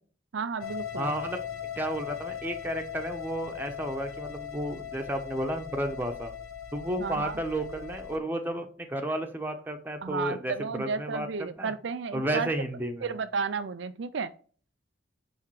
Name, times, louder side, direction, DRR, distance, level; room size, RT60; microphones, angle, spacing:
voice 1, 0.3-1.1 7.0-7.4 10.0-12.5 13.0-14.3, right 5 dB, 60° right, 11 dB, 0.4 m, -32 dB
sound 1, 0.6-8.2, left 9 dB, 85° left, 1.3 m, -39 dB
voice 2, 1.0-1.4 1.8-6.3 6.7-11.7 12.1-13.1, right 1 dB, 10° right, 4 dB, 1.1 m, -32 dB
10.5 x 3.6 x 4.8 m, 0.44 s
head